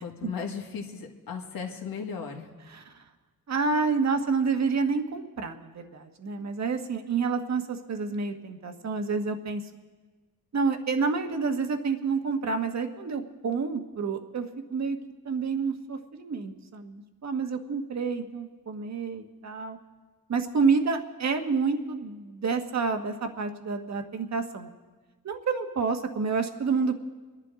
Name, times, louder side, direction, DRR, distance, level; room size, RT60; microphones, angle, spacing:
voice 1, 0.0-2.5, left 6 dB, 75° left, 1 dB, 2.0 m, -36 dB
voice 2, 3.5-9.6 10.5-15.0 15.2-19.8 20.3-24.7 25.2-27.0, right 4 dB, 50° right, 6 dB, 1.4 m, -29 dB
28.0 x 11.0 x 3.8 m, 1.3 s
cardioid pair, 90°, 35 cm